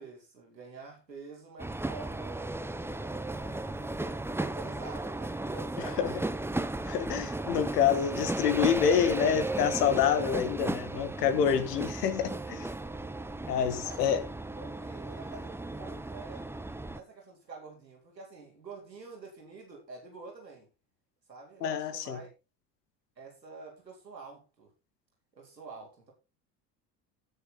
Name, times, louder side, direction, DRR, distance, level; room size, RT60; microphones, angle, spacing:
voice 1, 0.0-2.7 3.3-6.4 13.7-14.2 14.5-16.5 16.9-20.7 21.3-22.3 23.2-24.7 25.4-26.1, right 4 dB, 90° right, 3.8 m, -47 dB
sound 1, 1.6-17.0, right 2 dB, 5° right, 1.0 m, -35 dB
voice 2, 6.9-12.7 13.5-14.2 21.6-22.2, left 8 dB, 70° left, 1.9 m, -27 dB
17.0 x 7.0 x 4.2 m
figure-of-eight pair, 65°, 49 cm